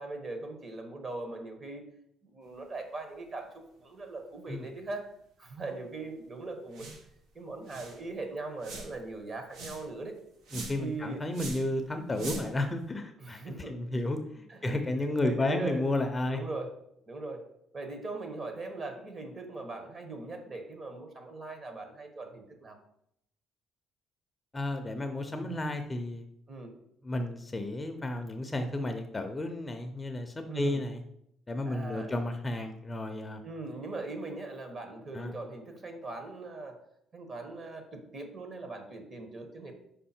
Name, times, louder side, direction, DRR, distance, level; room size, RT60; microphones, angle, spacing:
voice 1, 0.0-1.8 2.2-5.1 5.4-6.9 7.3-10.2 10.8-11.2 12.2-12.4 13.2-13.8 14.5-14.9 15.2-15.8 16.2-16.7 17.1-17.4 17.7-22.8 25.4-25.6 26.5-26.8 30.5-30.9 31.6-32.2 33.4-36.8 37.1-39.7, right 3 dB, 35° right, 5 dB, 1.3 m, -40 dB
sound 1, 6.7-7.1 7.4-7.5 7.6-8.0 8.6-9.0 9.5-9.9 10.4-10.9 11.3-11.7 12.1-12.6, right 3 dB, 80° right, 1.2 m, -41 dB
voice 2, 10.5-13.4 13.7-16.4 24.5-26.2 27.0-31.0 31.5-33.4 35.1-35.3, left 1 dB, 20° left, 6 dB, 0.6 m, -32 dB
5.5 x 4.9 x 4.4 m, 0.76 s
cardioid pair, 115°, 0 cm